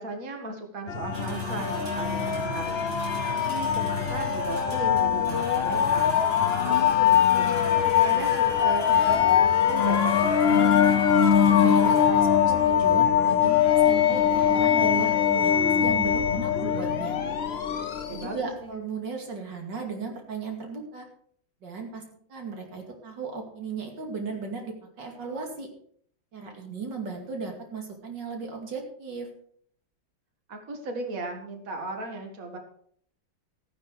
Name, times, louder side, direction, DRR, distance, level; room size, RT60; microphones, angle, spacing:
voice 1, 0.0-6.2 6.6-7.5 7.8-11.0 18.0-18.7 30.5-32.6, right 2 dB, 45° right, 4 dB, 2.2 m, -36 dB
sound 1, 0.9-18.4, left 9 dB, 45° left, 0.8 m, -22 dB
sound 2, 1.1-18.7, right 1 dB, 85° right, 4.0 m, -40 dB
voice 2, 11.5-17.2 18.1-21.1 21.6-22.0 22.3-25.7 26.3-29.3, right 5 dB, 65° right, 2 dB, 3.1 m, -36 dB
15.5 x 9.8 x 4.9 m, 0.62 s
omnidirectional pair, 2.1 m